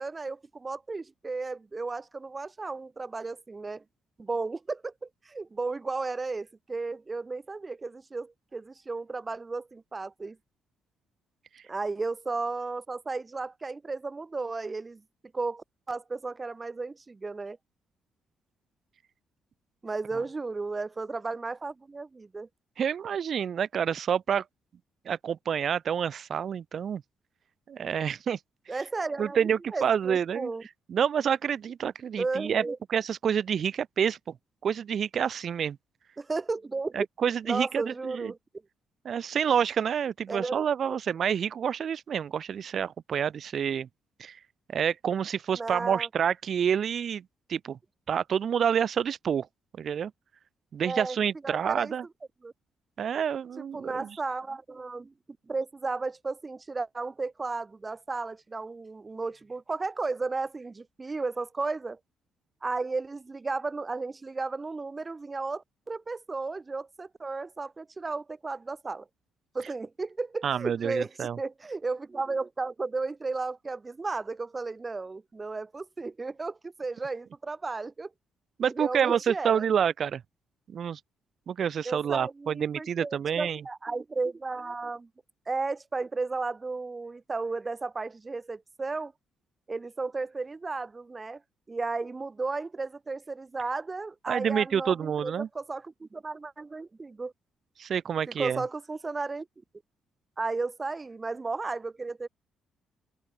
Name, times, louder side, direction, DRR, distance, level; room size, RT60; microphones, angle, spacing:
voice 1, 0.0-3.8 4.2-10.4 11.7-15.0 15.3-17.6 19.8-22.5 28.7-29.4 29.7-30.6 32.2-32.8 36.2-36.9 37.4-38.4 40.3-40.5 45.5-46.1 50.8-51.2 51.4-51.9 52.4-52.5 53.7-55.1 55.5-62.0 62.6-69.0 69.5-71.1 71.4-78.1 78.6-79.7 81.8-85.1 85.5-89.1 89.7-91.4 91.7-97.3 98.3-99.5 100.4-102.3, right 3 dB, 25° right, 3.0 m, -34 dB
voice 2, 22.8-24.4 25.1-27.0 27.7-28.4 29.2-30.5 30.9-32.6 32.9-34.3 34.6-35.8 36.9-38.3 39.0-43.9 44.2-44.4 44.7-47.2 47.5-47.8 48.1-49.5 49.8-50.1 50.7-52.1 53.0-54.1 70.4-71.4 78.6-80.2 80.7-81.0 81.5-83.6 94.3-95.5 97.8-98.6, right 8 dB, 55° right, 0.4 m, -28 dB
open air
cardioid pair, 90°, 0 cm